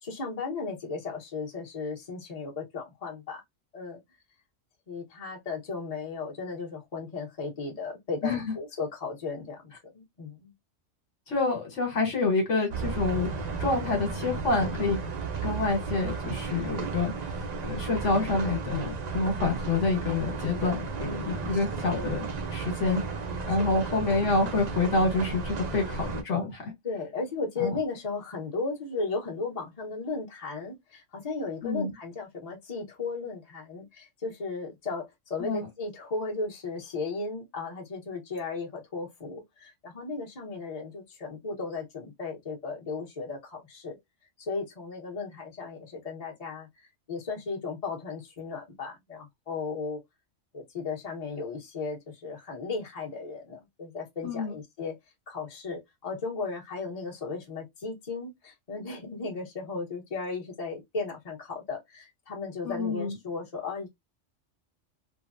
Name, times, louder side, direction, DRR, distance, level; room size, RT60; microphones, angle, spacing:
voice 1, 0.0-3.4 3.7-4.0 4.9-10.5 21.0-21.6 21.9-22.1 23.5-23.8 26.8-44.0 44.4-46.7 47.1-50.0 50.5-55.0 55.3-63.9, left 4 dB, 30° left, 1.1 m, -35 dB
voice 2, 11.3-15.0 15.4-17.3 17.6-22.2 22.5-23.0 23.4-26.7 27.6-27.7 31.6-31.9 35.4-35.7 54.2-54.5 62.6-63.2, left 3 dB, 70° left, 1.5 m, -27 dB
sound 1, 12.7-26.2, right 4 dB, 55° right, 0.4 m, -34 dB
3.2 x 2.2 x 2.5 m
omnidirectional pair, 1.3 m